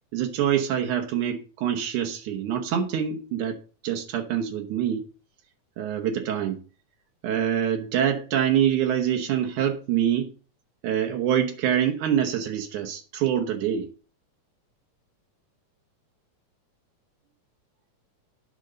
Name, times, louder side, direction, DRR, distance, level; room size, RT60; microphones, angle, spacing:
voice 1, 0.1-3.6 3.8-5.0 5.8-6.6 7.2-10.3 10.8-13.9, right 9 dB, 85° right, 2.6 m, -25 dB
10.5 x 5.4 x 6.3 m
omnidirectional pair, 3.4 m